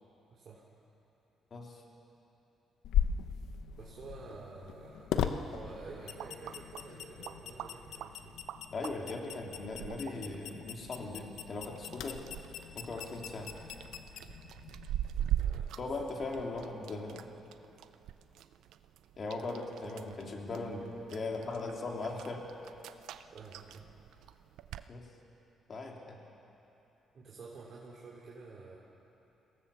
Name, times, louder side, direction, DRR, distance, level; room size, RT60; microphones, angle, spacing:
voice 1, 0.3-0.6 3.8-5.1 5.5-8.4 15.1-15.9 23.3-23.9 27.1-28.8, right 4 dB, 55° right, -5 dB, 3.2 m, -50 dB
voice 2, 1.5-1.8 8.7-12.2 12.7-13.5 15.8-17.2 19.2-22.5 24.9-25.1 25.7-26.2, left 3 dB, 45° left, 0 dB, 3.3 m, -39 dB
sound 1, 2.8-15.1, left 9 dB, 85° left, 0.9 m, -39 dB
sound 2, 5.7-24.9, right 11 dB, 85° right, 0.6 m, -43 dB
23.0 x 17.0 x 7.1 m, 3.0 s
cardioid pair, 90°, 0 cm